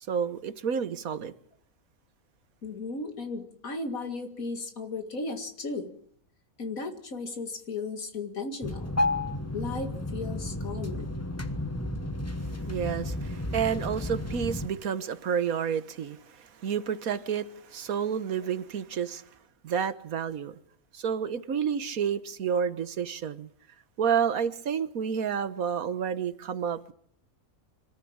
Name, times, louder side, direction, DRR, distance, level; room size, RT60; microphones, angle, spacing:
voice 1, 0.1-1.3 12.7-19.2 19.6-20.5 20.9-23.5 24.0-26.9, right 7 dB, 80° right, 1.6 m, -30 dB
voice 2, 2.6-5.9 6.6-9.0 9.5-11.1, left 3 dB, 75° left, 2.5 m, -35 dB
sound 1, 8.6-14.7, left 1 dB, 10° left, 1.1 m, -32 dB
25.5 x 14.0 x 8.7 m
omnidirectional pair, 1.5 m